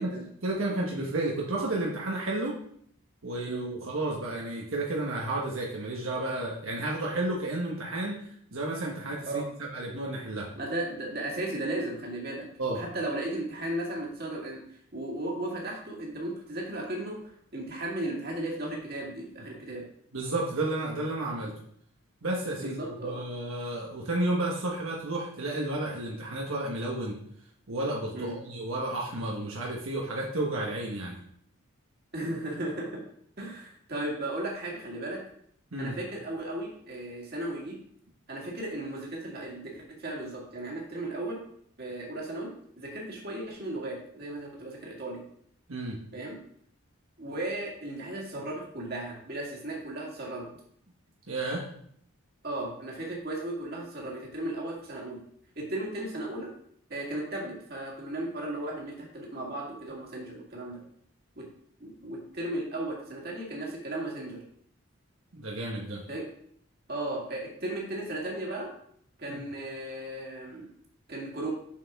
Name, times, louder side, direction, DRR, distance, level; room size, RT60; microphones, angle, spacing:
voice 1, 0.4-2.5 3.2-9.4 9.7-10.5 12.6-12.8 20.1-21.5 22.2-27.2 27.7-31.2 35.7-35.9 45.7-46.0 51.3-51.6 65.3-66.0 69.3-69.4, right 2 dB, 75° right, -2 dB, 1.3 m, -32 dB
voice 2, 10.6-14.6 14.9-17.2 17.5-19.8 22.6-23.1 28.1-28.3 32.1-33.0 33.4-35.2 35.8-37.8 38.3-41.4 41.8-42.5 42.8-45.2 46.1-46.4 47.2-50.5 52.4-55.2 55.6-56.5 56.9-60.8 61.4-61.5 61.8-64.4 66.1-66.3 66.9-68.7 69.2-70.7 71.1-71.5, right 1 dB, 45° right, -2 dB, 2.1 m, -35 dB
7.3 x 6.7 x 3.6 m, 0.66 s
head